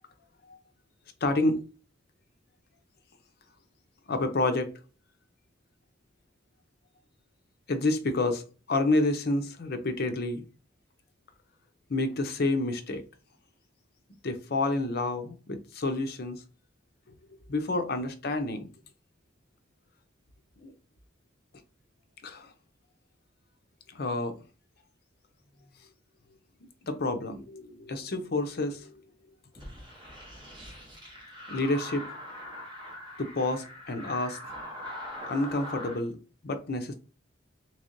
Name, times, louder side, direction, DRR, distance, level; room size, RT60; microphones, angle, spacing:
voice 1, 1.2-1.6 4.1-4.7 7.7-10.4 11.9-13.0 14.2-16.4 17.5-18.7 20.6-20.7 22.2-22.5 23.9-24.4 26.8-29.0 31.5-32.1 33.2-34.4 35.3-36.2 36.4-36.9, left 2 dB, 50° left, 0.6 m, -29 dB
sound 1, 29.5-36.0, left 1 dB, 25° right, 1.3 m, -42 dB
3.5 x 3.2 x 2.6 m
head